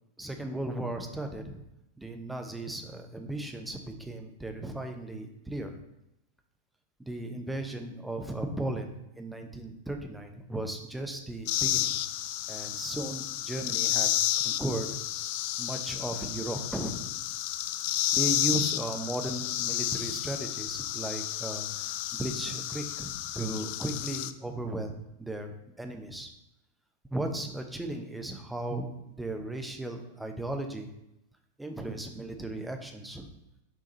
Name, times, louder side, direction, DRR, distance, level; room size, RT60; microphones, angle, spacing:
voice 1, 0.2-1.6 2.0-5.7 7.1-12.0 12.5-14.1 14.4-14.9 15.6-17.2 18.1-26.3 27.1-30.9 31.6-33.3, right 1 dB, 5° right, 4 dB, 0.8 m, -36 dB
sound 1, 11.5-24.3, left 13 dB, 50° left, 0.3 m, -31 dB
6.6 x 3.7 x 4.3 m, 0.87 s
figure-of-eight pair, 90°, 0 cm